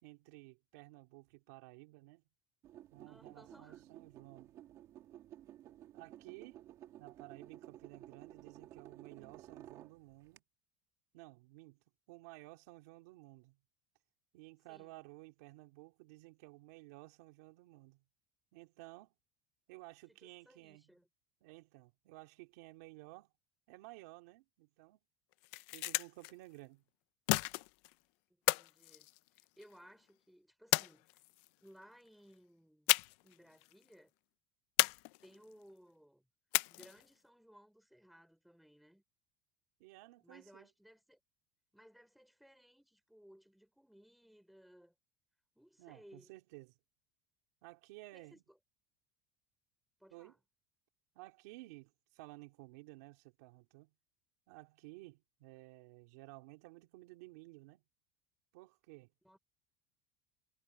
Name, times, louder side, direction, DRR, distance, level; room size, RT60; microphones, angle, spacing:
voice 1, 0.0-2.2 2.9-4.6 5.9-6.6 7.0-10.4 11.1-11.8 12.1-13.6 14.3-18.0 18.5-19.1 19.7-20.9 21.4-23.3 23.7-25.0 25.7-26.8 39.8-40.7 45.8-46.8 47.6-48.4 50.1-50.3 51.1-53.9 54.5-57.8 58.5-59.1, right 21 dB, 80° right, 2.9 m, -55 dB
sound 1, 2.6-10.4, right 12 dB, 40° right, 1.9 m, -55 dB
voice 2, 3.1-3.8 14.7-15.1 20.1-21.1 28.3-29.1 29.3-31.2 31.6-32.9 33.2-34.1 35.2-36.3 36.7-39.0 40.2-41.2 41.7-44.9 45.6-46.3 48.1-48.6 50.0-50.4 59.2-59.4, equal, ahead, 5.5 m, -61 dB
sound 2, 25.3-26.3 27.3-27.9 28.5-29.7 30.7-31.5 32.9-33.3 33.6-33.7 34.8-35.5 36.5-37.1, left 23 dB, 65° left, 0.6 m, -33 dB
cardioid pair, 165°, 8 cm